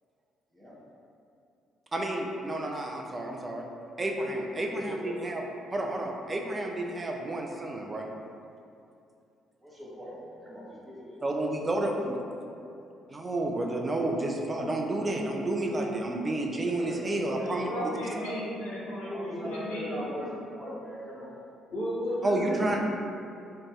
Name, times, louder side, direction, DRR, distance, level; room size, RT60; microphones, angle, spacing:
voice 1, 1.9-3.6 4.0-5.4 5.7-8.1 11.2-12.2 13.1-17.7 22.2-22.8, right 1 dB, 30° right, 1 dB, 0.4 m, -30 dB
voice 2, 4.5-5.2 9.6-11.6 11.8-12.0 12.5-12.8 16.4-18.4 19.0-21.3 22.3-22.8, equal, 10° right, -7 dB, 0.9 m, -41 dB
voice 3, 17.4-20.1 21.7-22.8, equal, 70° left, -8 dB, 0.7 m, -34 dB
2.6 x 2.1 x 3.2 m, 2.6 s
hypercardioid pair, 45°, 0 cm